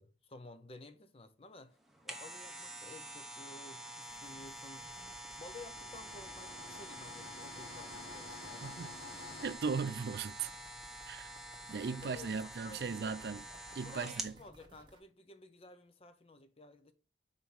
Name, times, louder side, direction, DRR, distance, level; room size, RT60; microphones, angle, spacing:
voice 1, 0.0-1.8 2.0-4.9 5.4-9.0 11.9-13.2 13.7-16.9, left 2 dB, 35° left, 0.6 m, -54 dB
sound 1, 1.8-14.4 14.8-14.9, right 1 dB, ahead, 0.7 m, -47 dB
sound 2, 4.1-15.0, right 2 dB, 25° right, 1.0 m, -60 dB
sound 3, 4.9-9.5, left 3 dB, 75° left, 1.1 m, -52 dB
voice 2, 8.6-8.9 9.4-10.5 11.1-11.3 11.7-13.5 13.7-14.3, right 5 dB, 65° right, 0.4 m, -37 dB
5.6 x 4.1 x 4.6 m
head